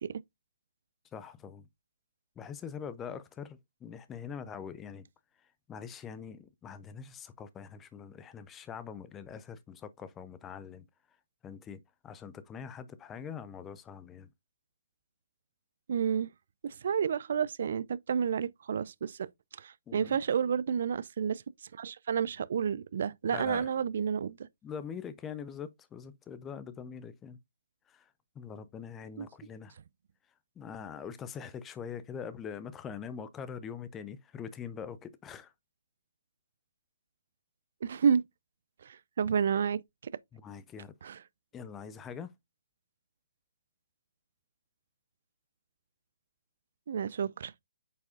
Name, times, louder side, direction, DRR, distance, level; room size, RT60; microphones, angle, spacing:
voice 1, 1.1-1.6 2.4-5.1 5.7-10.8 11.4-11.8 12.0-14.3 19.9-20.2 23.3-23.7 24.6-27.4 27.9-28.0 28.4-29.7 30.6-35.5 40.3-40.9 41.5-42.3, left 7 dB, 15° left, 0.6 m, -43 dB
voice 2, 15.9-16.3 16.6-19.3 19.6-21.4 21.8-24.4 29.2-29.3 37.8-38.2 38.8-39.8 41.0-41.2 46.9-47.5, right 7 dB, 50° right, 0.3 m, -30 dB
8.1 x 4.8 x 2.5 m
figure-of-eight pair, 135°, 0 cm